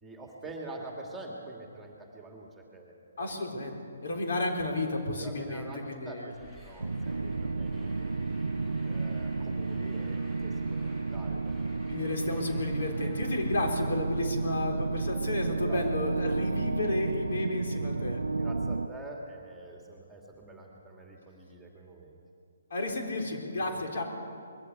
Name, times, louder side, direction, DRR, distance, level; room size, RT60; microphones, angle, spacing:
voice 1, 0.0-3.4 4.1-4.2 5.2-8.0 8.8-11.6 15.6-15.8 18.4-22.2 23.6-23.8, right 2 dB, 5° right, 0 dB, 2.6 m, -46 dB
voice 2, 3.2-3.8 4.0-6.3 11.9-18.2 22.7-24.0, left 2 dB, 60° left, 1 dB, 4.2 m, -32 dB
Truck, 6.3-13.7, equal, 15° left, 7.0 m, -52 dB
sound 1, 6.8-18.9, right 3 dB, 80° right, 0.6 m, -32 dB
21.5 x 15.0 x 8.5 m, 2.3 s
figure-of-eight pair, 140°, 0 cm